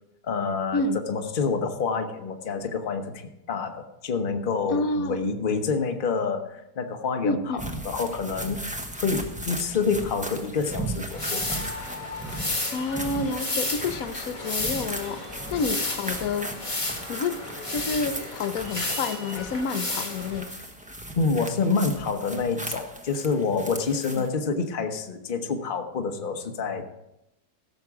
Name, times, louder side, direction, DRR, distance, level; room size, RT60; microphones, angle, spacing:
voice 1, 0.2-11.6 21.2-26.9, left 4 dB, 35° left, 5 dB, 1.1 m, -28 dB
voice 2, 4.7-5.2 7.2-7.6 12.7-15.2 15.5-16.5 17.1-17.4 17.7-20.6 24.2-24.3, left 3 dB, 65° left, 10 dB, 1.2 m, -29 dB
sound 1, 7.6-24.3, right 1 dB, 5° right, 0.9 m, -37 dB
sound 2, 11.1-20.5, left 2 dB, 20° left, 1.4 m, -32 dB
16.0 x 6.9 x 4.8 m, 0.88 s
omnidirectional pair, 1.7 m